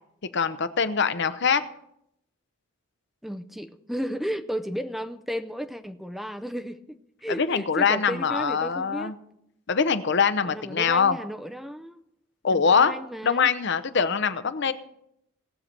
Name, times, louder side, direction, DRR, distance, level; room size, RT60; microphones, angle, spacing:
voice 1, 0.3-1.6 7.4-9.1 9.7-11.2 12.4-12.9 13.2-14.7, left 6 dB, 55° left, 0.7 m, -23 dB
voice 2, 3.2-9.1 10.4-12.0 12.5-13.5, equal, ahead, 0.5 m, -34 dB
19.0 x 6.6 x 4.3 m
head